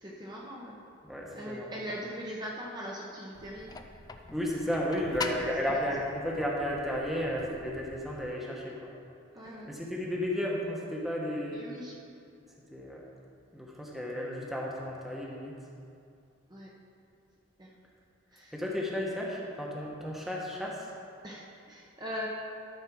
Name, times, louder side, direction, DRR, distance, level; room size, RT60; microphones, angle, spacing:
voice 1, 0.0-0.8 1.3-3.8 5.8-6.0 9.3-9.7 11.5-12.0 16.5-16.7 17.6-17.8 18.3-18.6 21.2-22.3, equal, 20° right, -4 dB, 0.9 m, -41 dB
voice 2, 1.1-1.7 4.3-8.9 9.7-11.6 12.7-13.0 13.5-15.5 18.5-20.9, equal, ahead, -3 dB, 1.1 m, -33 dB
sound 1, 3.3-8.4, left 3 dB, 20° left, 0.4 m, -43 dB
13.0 x 4.5 x 6.1 m, 2.5 s
head